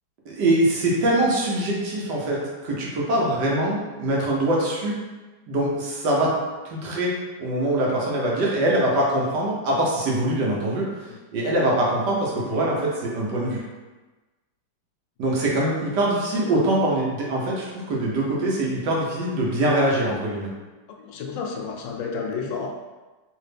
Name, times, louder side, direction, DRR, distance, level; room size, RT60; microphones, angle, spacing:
voice 1, 0.3-2.4 2.6-4.9 5.5-6.3 6.6-11.1 11.3-13.6 15.2-20.5, right 1 dB, 70° right, -4 dB, 1.4 m, -23 dB
voice 2, 21.0-22.7, left 5 dB, 80° left, 1 dB, 1.2 m, -31 dB
3.3 x 3.0 x 3.3 m, 1.2 s
omnidirectional pair, 2.0 m